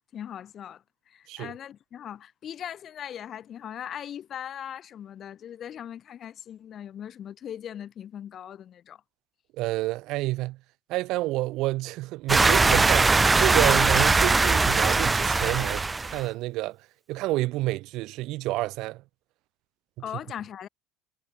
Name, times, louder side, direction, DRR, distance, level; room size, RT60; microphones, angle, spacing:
voice 1, 0.0-9.0 20.0-20.7, left 9 dB, 45° left, 3.4 m, -39 dB
voice 2, 9.6-10.6 10.9-16.8 17.1-19.0, right 18 dB, 60° right, 0.7 m, -29 dB
sound 1, 12.3-16.2, right 3 dB, 20° right, 0.5 m, -21 dB
hypercardioid pair, 70°, 0 cm